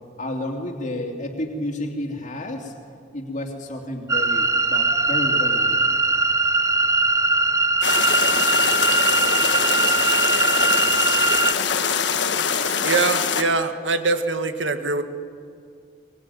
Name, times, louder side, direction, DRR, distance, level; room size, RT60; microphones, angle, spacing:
voice 1, 0.2-2.7 3.1-5.9, left 1 dB, 40° left, 1 dB, 2.8 m, -31 dB
sound 1, 4.1-11.5, right 3 dB, 15° right, 0.7 m, -20 dB
sound 2, 7.8-13.4, left 6 dB, 70° left, 1.5 m, -23 dB
voice 2, 12.6-15.0, right 3 dB, 85° right, 8 dB, 1.9 m, -23 dB
23.5 x 22.5 x 9.3 m, 2.2 s
head